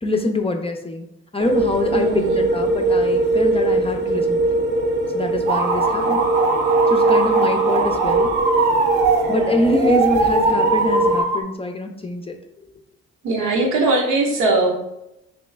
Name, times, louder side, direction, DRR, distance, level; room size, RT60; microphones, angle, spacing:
voice 1, 0.0-1.1 1.3-4.6 5.1-6.2 6.9-8.3 9.3-12.4, left 2 dB, 20° left, 4 dB, 0.6 m, -25 dB
sound 1, 1.4-11.2, right 2 dB, 35° right, 0.6 m, -21 dB
voice 2, 1.9-2.4 6.1-6.2 13.2-14.8, right 2 dB, 70° right, 0 dB, 1.0 m, -20 dB
sound 2, 5.5-11.4, right 4 dB, 90° right, 0.6 m, -21 dB
3.0 x 3.0 x 3.3 m, 0.85 s
hypercardioid pair, 55°, 31 cm